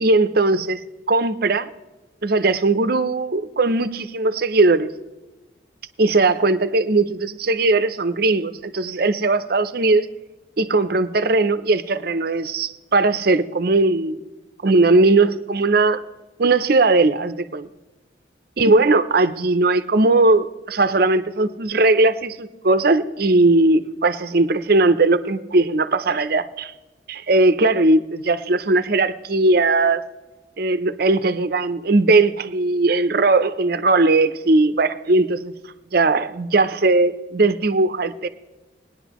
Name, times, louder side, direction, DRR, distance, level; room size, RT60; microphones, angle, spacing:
voice 1, 0.0-0.8 1.1-1.7 2.2-4.9 6.0-10.1 10.6-14.2 14.6-16.0 16.4-17.7 18.6-26.7 27.1-30.0 30.6-35.5 35.9-38.3, right 2 dB, 55° right, 12 dB, 0.6 m, -18 dB
20.0 x 10.0 x 3.0 m, 1.1 s
head